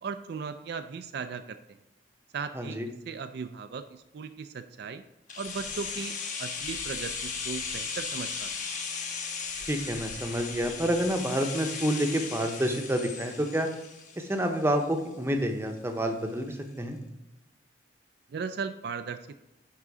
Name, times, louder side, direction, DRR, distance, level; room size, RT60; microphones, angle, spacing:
voice 1, 0.0-1.6 2.3-2.8 3.1-5.0 5.4-8.5 18.3-19.3, right 5 dB, 60° right, 9 dB, 0.4 m, -37 dB
voice 2, 2.5-2.9 9.7-13.7 14.2-17.0, equal, 15° right, 4 dB, 0.7 m, -28 dB
sound 1, 5.3-15.1 15.4-15.5, left 5 dB, 45° left, 1.0 m, -37 dB
10.5 x 3.7 x 4.8 m, 0.95 s
head